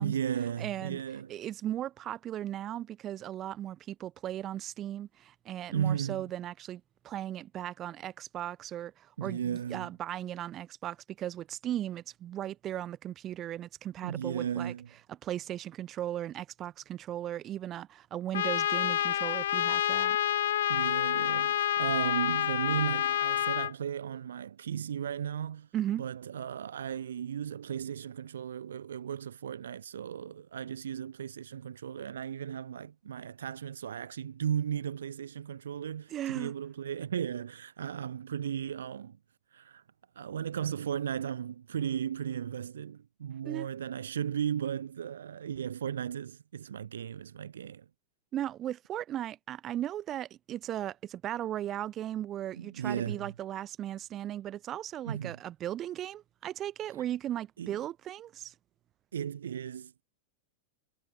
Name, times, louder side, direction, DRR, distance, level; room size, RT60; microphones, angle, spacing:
voice 1, 0.0-1.3 5.7-6.3 9.2-9.9 14.0-14.9 20.7-25.7 26.0-39.2 39.5-39.8 40.2-47.9 52.5-53.3 55.0-55.4 57.6-57.8 59.1-60.0, right 9 dB, 65° right, 3.7 m, -35 dB
voice 2, 0.6-1.0 1.3-14.7 15.2-20.2 25.7-26.0 36.1-36.5 43.4-43.7 48.3-58.5, right 12 dB, 30° right, 6.0 m, -37 dB
Trumpet, 18.3-23.7, left 11 dB, 60° left, 0.7 m, -28 dB
figure-of-eight pair, 90°, 0 cm